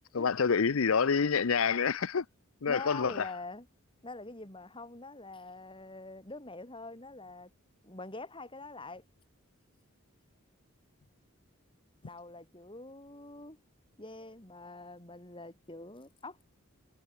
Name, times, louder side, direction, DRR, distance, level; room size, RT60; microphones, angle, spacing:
voice 1, 0.1-2.2 2.6-3.3, left 6 dB, 80° left, 0.7 m, -27 dB
voice 2, 2.6-3.7 4.0-7.5 7.8-9.0 12.0-13.6 14.0-16.4, left 2 dB, 25° left, 4.4 m, -45 dB
head